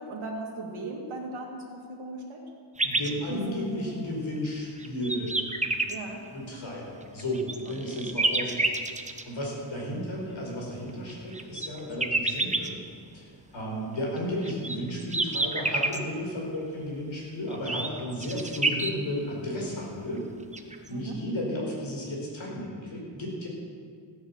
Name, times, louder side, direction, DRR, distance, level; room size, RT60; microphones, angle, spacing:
voice 1, 0.0-2.4 3.3-4.0 5.9-6.2 7.6-8.1 20.9-21.2, right 2 dB, 70° right, -2 dB, 2.6 m, -37 dB
voice 2, 2.8-5.5 6.3-8.6 9.0-12.8 13.1-20.2 20.9-23.5, equal, 65° left, -2 dB, 5.0 m, -33 dB
sound 1, 2.8-3.1 3.8-3.9 4.6-6.0 7.0-9.2 10.9-12.7 14.2-16.0 17.5-18.9 20.2-20.3 20.5-20.9, right 2 dB, 15° right, 0.9 m, -28 dB
16.0 x 9.8 x 7.3 m, 2.1 s
wide cardioid pair, 120°, 49 cm